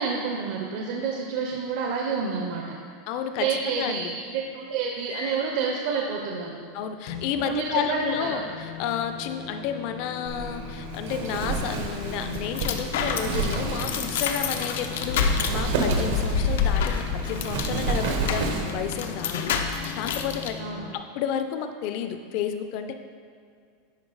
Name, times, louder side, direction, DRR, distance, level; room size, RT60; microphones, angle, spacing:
voice 1, 0.0-2.8 3.4-6.6 7.4-8.4 20.6-20.8, right 5 dB, 50° right, 0 dB, 0.6 m, -29 dB
voice 2, 3.1-4.2 6.7-20.6 20.9-23.0, left 8 dB, 40° left, 8 dB, 0.4 m, -31 dB
sound 1, 5.1-5.5 7.1-20.9, left 7 dB, 70° left, 1.2 m, -40 dB
Wind, 10.3-18.9, right 3 dB, 80° right, 1.0 m, -30 dB
sound 2, 11.9-20.5, left 6 dB, 90° left, 0.6 m, -28 dB
10.5 x 4.3 x 4.0 m, 2.2 s
supercardioid pair, 175°, 0 cm